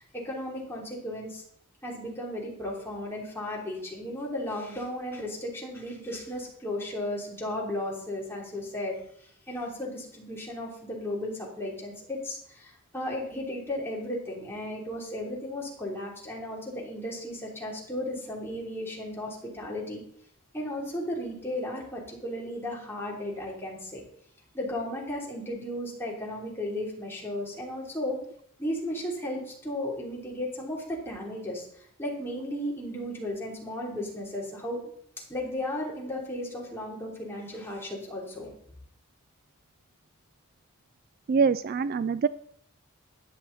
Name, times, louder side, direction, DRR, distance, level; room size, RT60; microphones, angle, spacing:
voice 1, 0.0-1.4 1.8-9.0 9.5-20.0 20.5-24.0 24.5-28.2 28.6-31.7 32.0-34.8 35.3-38.5, left 1 dB, 10° left, -3 dB, 3.4 m, -35 dB
voice 2, 41.3-42.3, right 5 dB, 45° right, 15 dB, 0.3 m, -24 dB
13.0 x 9.7 x 4.1 m, 0.66 s
head